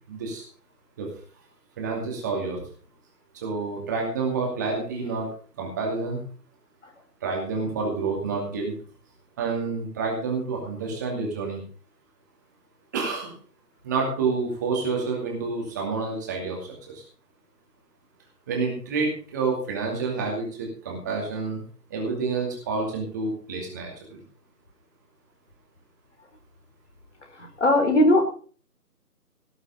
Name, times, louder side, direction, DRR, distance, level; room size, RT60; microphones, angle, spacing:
voice 1, 0.1-0.4 1.0-1.1 1.8-2.6 3.4-5.3 5.6-6.2 7.2-8.7 9.4-11.6 12.9-13.3 13.8-17.0 18.5-21.6 21.9-24.2, right 4 dB, 10° right, 0 dB, 2.4 m, -28 dB
voice 2, 27.6-28.2, left 1 dB, 45° left, 5 dB, 4.2 m, -18 dB
17.5 x 6.6 x 6.7 m, 0.42 s
figure-of-eight pair, 160°, 48 cm